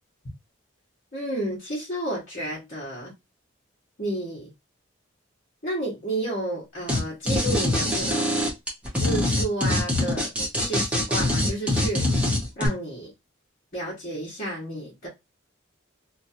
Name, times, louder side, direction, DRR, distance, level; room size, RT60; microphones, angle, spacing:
voice 1, 1.1-3.1 4.0-4.5 5.6-8.4 8.9-10.3 10.6-12.1 12.6-13.1 13.7-15.1, right 1 dB, 45° left, 1.2 m, -31 dB
sound 1, 6.9-7.0 7.3-12.7, left 1 dB, 5° right, 1.0 m, -23 dB
2.8 x 2.4 x 2.7 m
head